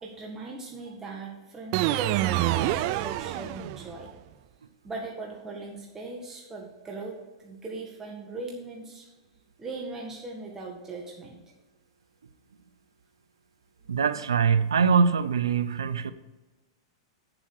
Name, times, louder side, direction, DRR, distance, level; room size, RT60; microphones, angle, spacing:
voice 1, 0.0-4.1 4.8-7.1 7.4-9.1 9.6-11.4, right 3 dB, 15° right, 1.6 m, -39 dB
sound 1, 1.7-4.0, right 14 dB, 50° right, 0.5 m, -27 dB
voice 2, 13.9-16.1, right 6 dB, 90° right, 0.6 m, -23 dB
9.1 x 7.6 x 4.7 m
hypercardioid pair, 120°, 2 cm